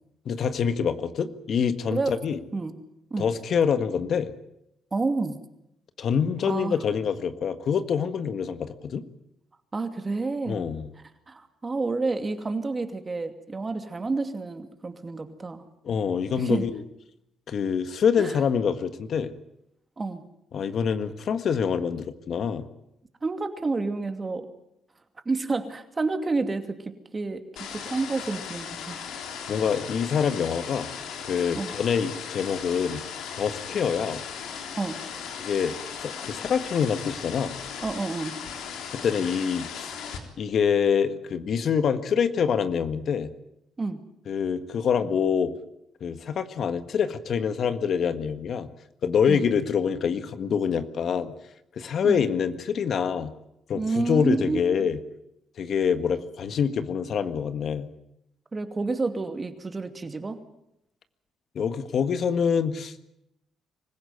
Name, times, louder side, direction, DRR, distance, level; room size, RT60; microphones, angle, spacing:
voice 1, 0.2-2.4 3.2-4.3 6.0-9.0 10.5-10.9 15.8-16.8 17.5-19.3 20.5-22.7 29.5-30.9 31.2-33.0 33.3-34.2 35.4-35.7 36.0-37.5 38.9-39.9 40.4-43.3 44.3-45.5 46.0-48.7 49.0-51.3 51.8-53.3 53.7-55.0 55.6-57.9 61.5-63.0, left 7 dB, 60° left, 10 dB, 1.6 m, -26 dB
voice 2, 4.9-5.4 6.4-6.8 9.7-10.6 11.3-15.6 16.4-16.7 18.2-18.4 20.0-20.2 23.2-24.5 25.2-27.4 27.7-29.0 31.6-31.7 34.7-35.0 37.8-38.3 43.8-44.0 49.3-49.5 52.0-52.2 53.7-54.9 58.5-60.4, right 3 dB, 30° right, 7 dB, 2.6 m, -29 dB
sound 1, 27.6-40.2, left 7 dB, 85° left, 3.7 m, -37 dB
25.0 x 15.5 x 9.5 m, 0.82 s
cardioid pair, 90°, 0 cm